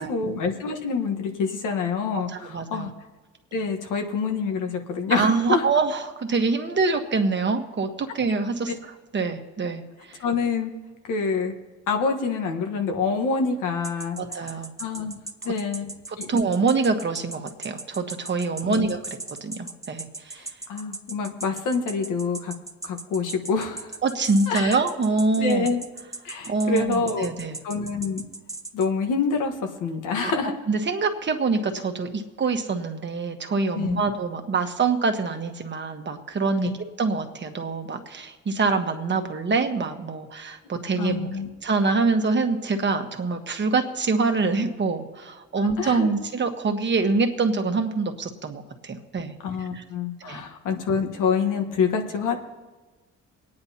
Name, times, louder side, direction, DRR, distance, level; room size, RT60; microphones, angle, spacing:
voice 1, 0.0-2.9 3.5-5.6 10.2-10.7 11.0-11.5 11.9-15.2 15.4-15.9 16.2-16.3 18.7-18.9 20.4-22.5 22.8-24.0 24.5-24.8 25.4-25.8 26.2-27.3 27.6-28.2 28.7-29.5 29.8-30.6 33.7-34.0 36.6-36.8 41.0-41.5 45.6-46.1 49.4-52.4, left 5 dB, 90° left, 4 dB, 1.4 m, -26 dB
voice 2, 2.5-2.9 5.1-8.7 9.1-10.2 14.2-14.7 16.1-19.0 19.4-20.5 24.0-25.7 26.5-27.6 30.2-30.3 30.7-41.3 41.6-49.3 49.7-49.8 50.2-50.4, right 4 dB, 35° right, 6 dB, 1.2 m, -25 dB
sound 1, 13.8-28.9, right 2 dB, 10° right, 0.9 m, -37 dB
24.0 x 9.6 x 2.9 m, 1.3 s
cardioid pair, 90°, 30 cm